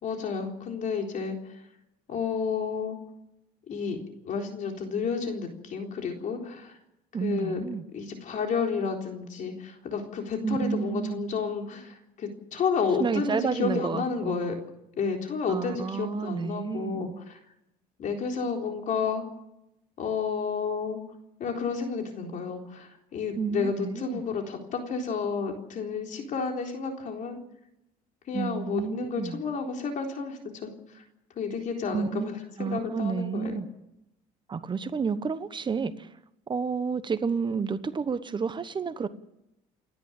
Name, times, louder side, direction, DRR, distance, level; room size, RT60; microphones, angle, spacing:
voice 1, 0.0-1.6 2.1-3.0 3.7-4.0 4.2-6.8 7.2-7.6 7.9-14.6 15.0-17.4 18.0-19.2 20.0-21.0 21.4-27.4 28.3-30.7 30.9-31.0 31.4-33.6, left 5 dB, 50° left, 3 dB, 3.9 m, -31 dB
voice 2, 7.1-7.8 10.4-11.2 13.0-14.4 15.5-17.2 23.4-24.2 28.3-29.4 31.9-32.3 32.6-33.7 34.5-36.1 36.5-39.1, right 5 dB, 30° right, 13 dB, 1.1 m, -30 dB
29.5 x 11.0 x 9.0 m, 0.88 s
cardioid pair, 105°, 17 cm